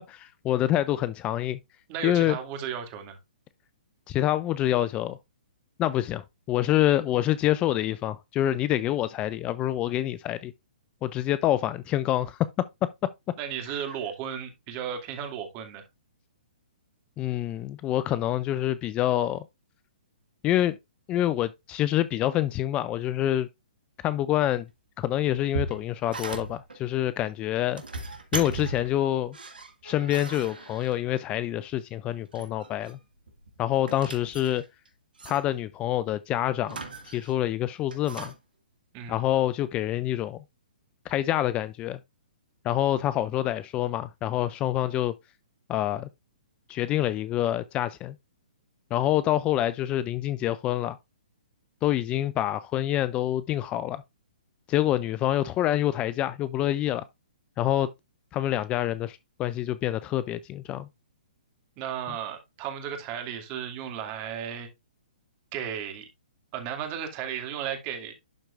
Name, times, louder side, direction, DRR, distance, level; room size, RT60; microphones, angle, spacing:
voice 1, 0.1-1.6 2.0-2.4 4.1-5.2 5.8-10.5 11.0-12.4 17.2-19.4 20.4-20.8 21.1-23.5 24.0-24.7 25.0-27.8 28.3-29.4 29.8-33.0 33.6-34.6 35.3-36.8 37.0-38.3 39.1-40.4 41.1-42.0 42.6-45.1 45.7-46.1 46.7-48.2 48.9-51.0 51.8-54.0 54.7-57.0 57.6-57.9 58.3-60.9, left 13 dB, 25° left, 0.4 m, -26 dB
voice 2, 1.9-3.2 13.4-15.8 38.9-39.2 61.8-64.7 65.5-66.1 66.5-68.1, right 8 dB, 35° right, 2.2 m, -34 dB
sound 1, 25.2-26.8 27.6-29.0 29.3-31.2 32.1-33.0 33.3-34.9 35.2-35.4 36.6-37.4 37.9-38.4, right 4 dB, 85° right, 1.9 m, -37 dB
11.5 x 4.5 x 2.4 m
hypercardioid pair, 130°, 5 cm